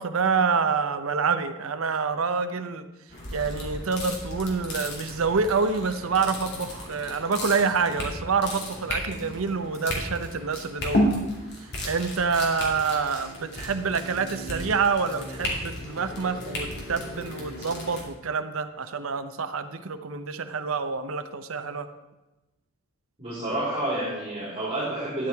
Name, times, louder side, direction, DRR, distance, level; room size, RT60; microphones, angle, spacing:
voice 1, 0.0-2.8 3.3-11.3 11.8-21.9, right 5 dB, 75° right, 10 dB, 0.7 m, -27 dB
sound 1, 3.1-18.0, equal, 50° left, 2.5 m, -33 dB
voice 2, 23.2-25.3, right 1 dB, 25° right, -10 dB, 4.2 m, -29 dB
12.5 x 9.4 x 3.5 m, 1.1 s
head